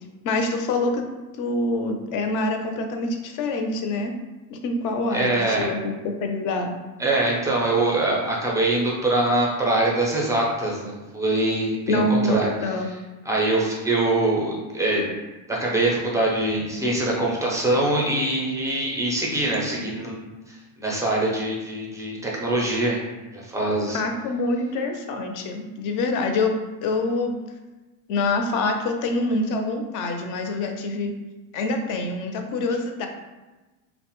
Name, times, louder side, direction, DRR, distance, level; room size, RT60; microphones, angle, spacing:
voice 1, 0.2-1.0 1.4-4.1 4.5-5.9 6.2-6.7 11.9-12.9 23.9-26.5 26.8-27.4 28.1-31.1 31.5-33.1, left 2 dB, 50° left, 5 dB, 0.5 m, -25 dB
voice 2, 5.1-5.7 7.0-12.8 13.3-15.1 15.5-23.0 23.3-24.0, right 2 dB, 10° right, -3 dB, 0.4 m, -23 dB
2.9 x 2.1 x 2.9 m, 1.1 s
cardioid pair, 125°, 43 cm